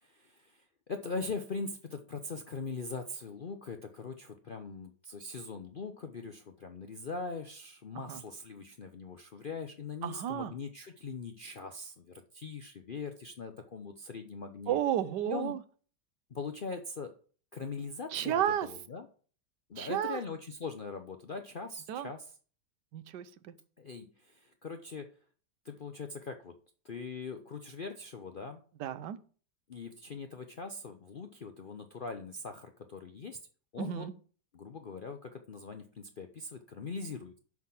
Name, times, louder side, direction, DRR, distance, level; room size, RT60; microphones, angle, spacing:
voice 1, 0.0-14.8 15.3-15.5 16.3-17.1 17.5-19.1 19.7-22.4 23.8-25.1 25.6-26.6 26.8-28.6 29.7-33.4 33.7-34.1 34.5-37.4, left 4 dB, 55° left, 6 dB, 0.5 m, -41 dB
voice 2, 10.0-10.5 14.7-15.6 18.1-18.7 19.8-20.2 21.9-22.1 22.9-23.5 28.8-29.2 33.8-34.1, right 11 dB, 80° right, 14 dB, 1.3 m, -32 dB
6.2 x 6.0 x 7.2 m, 0.42 s
omnidirectional pair, 1.8 m